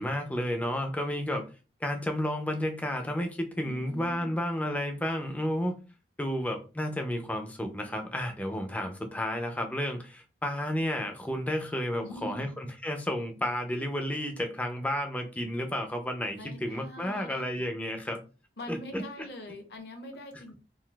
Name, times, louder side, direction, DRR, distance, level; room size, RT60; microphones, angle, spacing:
voice 1, 0.0-1.5 1.8-5.8 6.2-18.2 18.7-19.0, left 1 dB, 10° left, 4 dB, 0.4 m, -32 dB
voice 2, 3.6-4.3 12.0-12.5 16.4-17.6 18.6-20.6, left 1 dB, 65° left, 5 dB, 0.7 m, -43 dB
3.8 x 2.4 x 2.2 m, 0.33 s
head